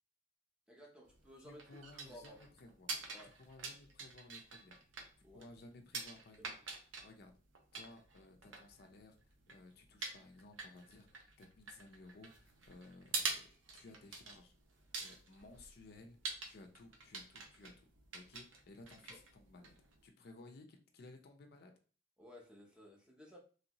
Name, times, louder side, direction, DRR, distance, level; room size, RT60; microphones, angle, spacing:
voice 1, 0.7-1.6 1.9-2.4 3.1-3.3 5.2-5.5 6.4-6.6 18.8-18.9 19.1-19.2 22.2-23.4, equal, 5° right, -1 dB, 0.7 m, -57 dB
sound 1, 1.0-20.1, right 4 dB, 85° right, 0.7 m, -47 dB
voice 2, 1.4-2.9 3.4-4.8 5.3-6.5 7.0-7.3 7.7-9.2 9.5-13.4 13.7-14.5 15.0-16.2 16.5-17.9 18.1-19.7 20.0-21.7, left 2 dB, 55° left, 5 dB, 0.5 m, -57 dB
3.1 x 2.6 x 2.9 m, 0.39 s
head